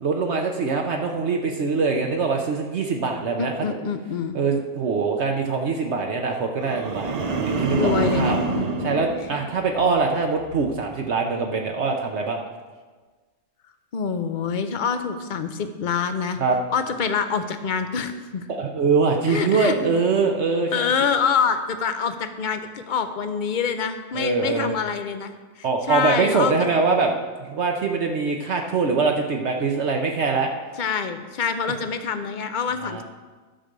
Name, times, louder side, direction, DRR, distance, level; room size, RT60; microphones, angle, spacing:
voice 1, 0.0-3.8 4.3-8.4 8.8-12.4 16.4-16.6 18.5-20.8 24.1-24.8 25.6-30.5 32.8-33.0, right 4 dB, 65° right, 2 dB, 1.0 m, -23 dB
voice 2, 3.4-4.4 7.8-8.4 13.9-16.4 16.7-18.5 19.3-20.0 20.7-26.5 30.8-33.0, left 6 dB, 50° left, 8 dB, 0.7 m, -26 dB
sound 1, 6.6-10.0 10.4-10.8, right 2 dB, 40° right, 0.7 m, -27 dB
11.5 x 4.9 x 6.7 m, 1.4 s
omnidirectional pair, 1.3 m